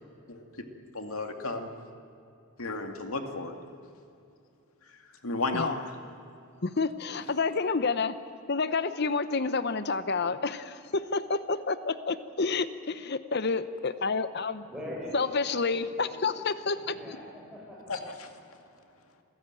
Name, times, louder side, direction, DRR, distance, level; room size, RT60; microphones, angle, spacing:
voice 1, 0.9-1.7 2.6-3.6 5.2-5.8 17.9-18.1, left 3 dB, 80° left, 5 dB, 2.3 m, -33 dB
voice 2, 6.6-8.2 8.5-14.6 15.1-16.9, left 4 dB, 50° left, 13 dB, 0.8 m, -29 dB
voice 3, 14.7-15.2 15.7-16.5 16.7-17.9, equal, 5° right, -5 dB, 7.6 m, -42 dB
27.5 x 16.0 x 9.1 m, 2.5 s
head